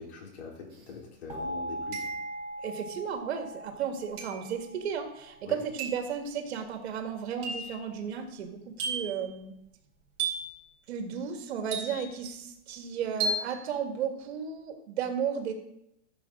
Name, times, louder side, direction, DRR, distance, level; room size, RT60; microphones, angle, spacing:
voice 1, 0.0-2.1 5.4-5.6, left 5 dB, 75° left, -1 dB, 4.1 m, -43 dB
Toy Xylophone, 0.7-0.8 1.9-2.5 4.2-4.5 5.8-6.1 7.4-7.8 8.8-9.2 10.2-10.6 11.7-12.2 13.2-13.5, right 3 dB, 35° right, 3.7 m, -33 dB
sound 1, 1.3-6.0, right 1 dB, 15° right, 1.5 m, -40 dB
voice 2, 2.6-9.5 10.9-15.5, right 7 dB, 70° right, 5 dB, 2.0 m, -34 dB
14.0 x 7.2 x 3.8 m, 0.81 s
supercardioid pair, 155°, 34 cm